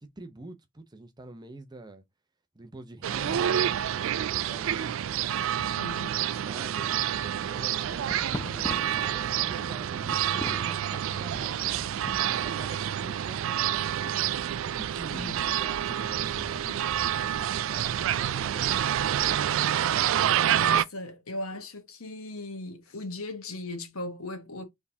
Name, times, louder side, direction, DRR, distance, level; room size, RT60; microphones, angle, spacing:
voice 1, 0.2-2.0 2.5-5.0 5.3-8.1 8.4-11.8 12.1-14.3 14.6-17.9 18.2-19.5, right 2 dB, 20° right, 0.7 m, -46 dB
sound 1, 3.0-20.8, right 10 dB, 65° right, 0.3 m, -28 dB
voice 2, 5.8-6.1 15.0-15.6 20.5-24.6, left 2 dB, 90° left, 1.4 m, -38 dB
sound 2, 7.8-12.8, left 2 dB, 15° left, 0.3 m, -41 dB
sound 3, 14.7-19.7, equal, 65° left, 1.8 m, -48 dB
4.3 x 3.6 x 2.7 m
head